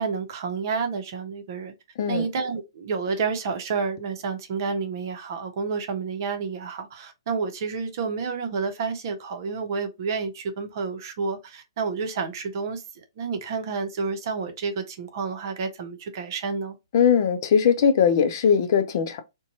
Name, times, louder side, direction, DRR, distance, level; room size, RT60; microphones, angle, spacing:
voice 1, 0.0-1.7 2.1-12.8 13.2-16.7, right 5 dB, 50° right, 0.7 m, -29 dB
voice 2, 16.9-19.2, left 7 dB, 50° left, 0.5 m, -20 dB
2.6 x 2.2 x 2.7 m
figure-of-eight pair, 125°, 3 cm